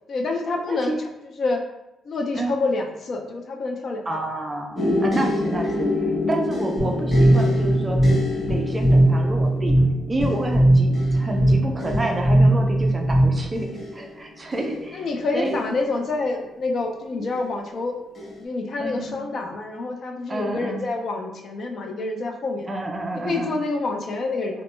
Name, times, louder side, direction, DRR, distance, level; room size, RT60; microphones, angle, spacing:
voice 1, 0.1-1.6 2.0-4.3 11.2-11.6 14.9-17.9 18.4-22.7 23.1-24.6, left 3 dB, 45° left, 3 dB, 0.4 m, -27 dB
voice 2, 4.1-8.0 8.5-9.8 10.1-13.7 13.9-15.0 15.3-15.6 17.1-17.3 18.8-19.2 20.3-20.8 22.7-23.6, right 2 dB, 20° right, 2 dB, 0.4 m, -29 dB
sound 1, 4.7-16.6 17.3-17.8 18.1-18.4, left 2 dB, 20° left, 0.8 m, -29 dB
sound 2, 6.8-13.6, right 1 dB, 5° right, 1.4 m, -19 dB
3.0 x 2.1 x 3.0 m, 0.93 s
cardioid pair, 135°, 0 cm